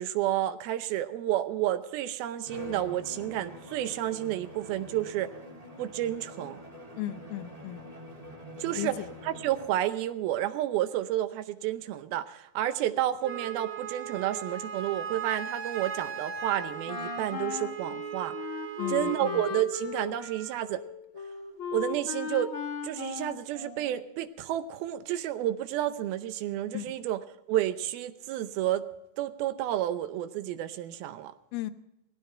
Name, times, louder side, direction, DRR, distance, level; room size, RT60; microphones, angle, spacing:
voice 1, 0.0-5.3 5.8-6.6 8.6-18.4 18.9-20.8 21.7-22.5 22.8-28.9 29.2-31.3, right 13 dB, 80° right, 11 dB, 2.6 m, -31 dB
Bowed string instrument, 2.4-9.9, left 1 dB, 15° right, 1.7 m, -46 dB
voice 2, 7.0-7.9 8.7-9.1 18.8-19.4 26.7-27.0 31.5-31.7, left 13 dB, 85° left, 11 dB, 2.8 m, -36 dB
Wind instrument woodwind instrument, 13.2-19.5, right 7 dB, 55° right, 2.0 m, -38 dB
Wind instrument woodwind instrument 2, 16.9-24.1, left 7 dB, 45° left, 1.8 m, -37 dB
18.0 x 16.0 x 4.4 m, 0.85 s
omnidirectional pair, 4.4 m